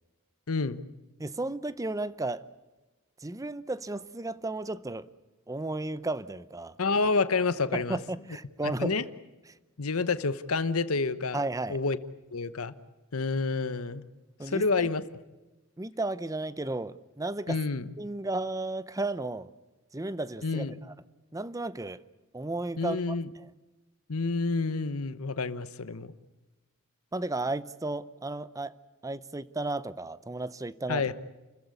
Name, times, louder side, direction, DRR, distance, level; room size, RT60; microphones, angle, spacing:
voice 1, 0.5-0.8 6.8-8.0 8.6-9.0 9.8-11.4 11.7-12.0 12.3-12.7 13.1-14.0 14.5-15.0 17.5-17.8 20.4-20.8 22.8-23.3 24.1-26.1 30.9-31.1, left 4 dB, 85° left, 1.0 m, -28 dB
voice 2, 1.2-2.4 3.2-5.1 5.5-6.7 7.7-9.0 11.3-11.8 14.4-14.9 15.8-17.6 18.0-19.5 19.9-20.9 21.3-22.0 22.3-23.5 27.1-28.7 29.0-31.1, right 2 dB, 15° right, 0.7 m, -34 dB
29.5 x 15.0 x 9.7 m
head